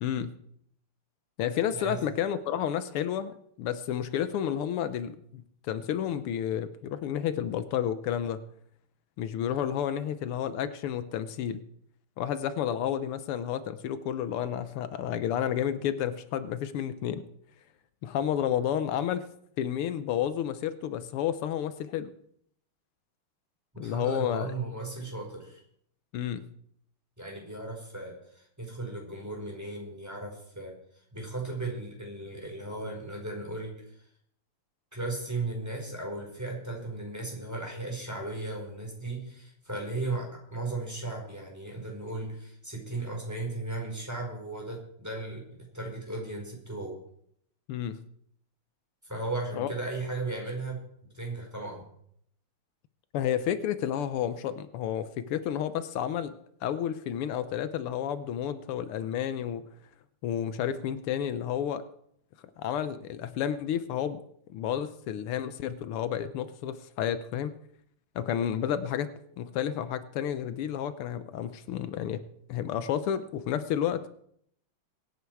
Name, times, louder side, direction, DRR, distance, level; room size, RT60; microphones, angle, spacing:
voice 1, 0.0-0.3 1.4-8.4 9.2-11.6 12.2-17.3 18.0-19.2 19.6-22.1 23.8-24.5 26.1-26.5 47.7-48.0 49.6-49.7 53.1-56.3 56.6-59.7 60.2-61.8 62.6-64.2 64.5-67.5 68.2-69.1 69.4-72.2 72.5-74.1, left 9 dB, 85° left, 12 dB, 1.7 m, -31 dB
voice 2, 1.7-2.1 23.7-25.6 27.2-30.7 31.1-34.0 34.9-45.4 45.7-46.9 49.0-50.8 51.1-51.8, right 2 dB, 5° right, 0 dB, 4.8 m, -36 dB
23.5 x 9.3 x 4.7 m, 0.68 s
omnidirectional pair, 2.4 m